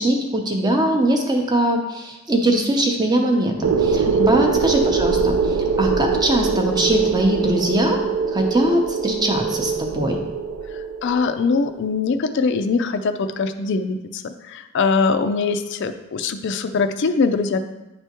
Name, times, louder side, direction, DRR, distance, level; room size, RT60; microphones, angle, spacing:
voice 1, 0.0-8.0 8.3-10.2, right 1 dB, 20° right, 2 dB, 0.6 m, -21 dB
sound 1, 3.6-11.4, right 5 dB, 80° right, 0.4 m, -22 dB
voice 2, 10.7-17.6, left 4 dB, 55° left, 8 dB, 0.4 m, -22 dB
10.0 x 3.4 x 2.9 m, 1.0 s
head